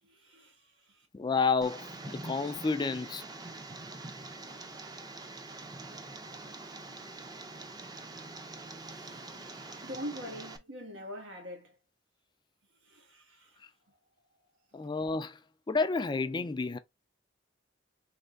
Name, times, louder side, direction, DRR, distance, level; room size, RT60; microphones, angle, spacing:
voice 1, 0.0-1.1 8.8-11.8 12.8-13.6 13.9-14.0, equal, 90° right, 1.6 m, -45 dB
voice 2, 1.1-3.2 14.7-15.4 15.7-16.8, left 4 dB, 25° left, 0.3 m, -30 dB
Tick, 1.6-10.6, right 2 dB, 20° right, 0.6 m, -45 dB
3.4 x 3.2 x 3.8 m
head